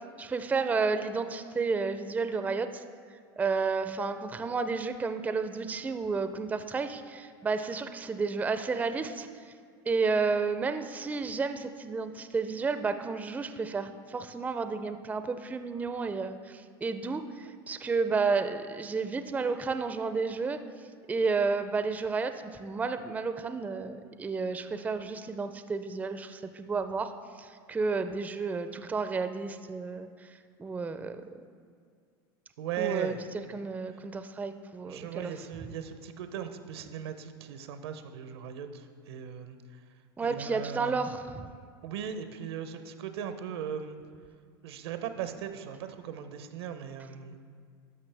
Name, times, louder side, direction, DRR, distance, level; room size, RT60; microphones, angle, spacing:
voice 1, 0.2-2.8 3.4-9.3 9.9-20.6 21.1-27.1 27.4-30.3 30.6-31.2 32.8-33.1 33.5-35.3 40.2-41.5, right 4 dB, 10° right, 9 dB, 0.4 m, -31 dB
voice 2, 32.6-33.2 33.9-34.0 34.8-39.8 40.2-41.0 41.8-44.0 44.6-47.4, right 8 dB, 80° right, 9 dB, 0.7 m, -38 dB
12.0 x 5.6 x 3.3 m, 2.1 s
supercardioid pair, 105°, 13 cm